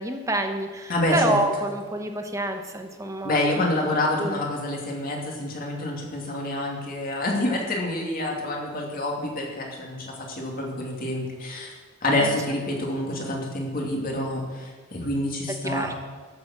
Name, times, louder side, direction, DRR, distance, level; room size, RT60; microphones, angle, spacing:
voice 1, 0.0-3.6 4.2-4.4 12.2-12.3 15.6-15.9, right 1 dB, 15° right, 5 dB, 1.0 m, -28 dB
voice 2, 0.9-1.4 3.2-11.7 12.0-15.9, left 1 dB, 45° left, -1 dB, 2.6 m, -27 dB
13.5 x 7.1 x 7.7 m, 1.5 s
head